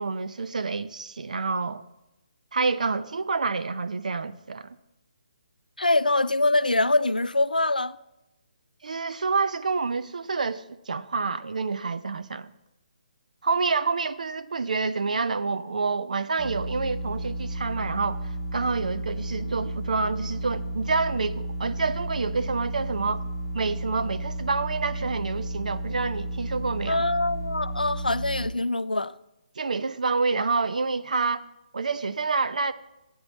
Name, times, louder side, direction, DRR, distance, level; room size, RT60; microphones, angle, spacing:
voice 1, 0.0-1.8 2.5-4.8 8.8-12.5 13.4-23.3 23.5-27.0 29.6-31.4 31.7-32.7, right 4 dB, 65° right, 0.6 m, -28 dB
voice 2, 5.8-8.0 26.9-29.1, left 2 dB, 90° left, 0.4 m, -24 dB
sound 1, 16.4-28.5, right 1 dB, 30° right, 3.3 m, -33 dB
15.0 x 8.8 x 4.1 m
figure-of-eight pair, 145°, 4 cm